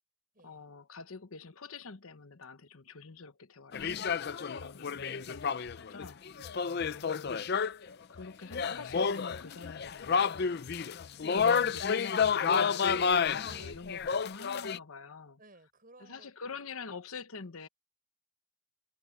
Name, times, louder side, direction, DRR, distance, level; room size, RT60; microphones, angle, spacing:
voice 1, 0.4-6.2 6.6-7.3 8.1-11.0 11.3-15.4 16.0-17.7, left 4 dB, 75° left, 1.0 m, -46 dB
sound 1, 3.7-7.9 8.2-8.3 8.5-14.8, left 6 dB, 50° left, 0.5 m, -30 dB
voice 2, 5.0-5.5 6.4-6.7 10.5-10.8 13.4-14.1 15.4-16.6, right 2 dB, 40° right, 6.8 m, -58 dB
head